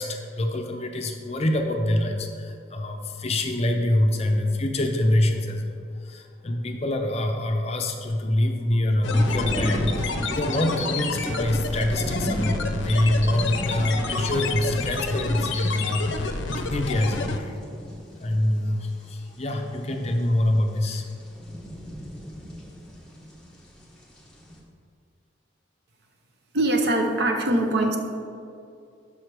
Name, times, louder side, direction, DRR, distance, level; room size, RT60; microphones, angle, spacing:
voice 1, 0.0-5.6 6.0-17.5 18.2-21.0, left 1 dB, 30° left, 3 dB, 0.5 m, -25 dB
sound 1, 9.0-17.4, left 3 dB, 75° left, 0.5 m, -29 dB
sound 2, 9.0-24.6, equal, 5° left, 0.9 m, -38 dB
voice 2, 26.5-28.0, right 1 dB, 55° right, 3 dB, 0.7 m, -22 dB
6.3 x 5.6 x 4.7 m, 2.4 s
head